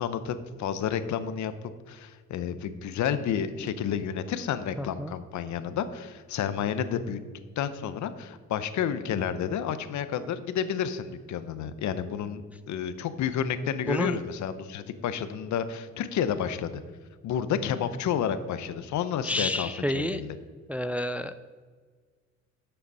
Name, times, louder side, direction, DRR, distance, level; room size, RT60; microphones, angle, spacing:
voice 1, 0.0-1.5 1.9-7.2 7.6-16.8 17.2-20.4, left 8 dB, 70° left, 12 dB, 0.7 m, -30 dB
voice 2, 4.8-5.1 13.9-14.2 19.2-20.2 20.7-21.3, left 1 dB, 5° right, 10 dB, 0.3 m, -29 dB
7.7 x 6.7 x 5.5 m, 1.5 s
cardioid pair, 90°, 30 cm